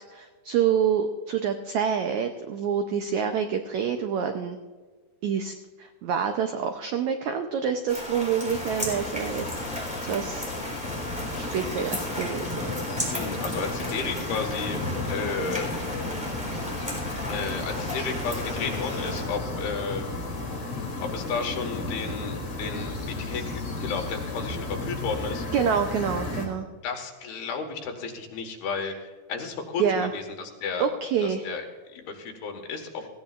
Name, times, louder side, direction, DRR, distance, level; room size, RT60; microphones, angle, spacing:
voice 1, 0.1-4.6 5.2-9.4 10.0-10.5 11.3-12.7 25.5-26.6 29.8-30.1 30.8-31.5, right 7 dB, 90° right, 6 dB, 1.6 m, -27 dB
sound 1, 7.9-19.2, equal, ahead, 3.1 m, -35 dB
sound 2, 8.5-26.5, left 2 dB, 40° left, 3.5 m, -33 dB
voice 2, 13.1-14.8 15.1-15.7 17.3-20.1 21.0-25.5 26.8-30.9 31.2-33.1, left 5 dB, 90° left, 3 dB, 3.6 m, -33 dB
17.5 x 16.0 x 2.5 m, 1.4 s
omnidirectional pair, 4.3 m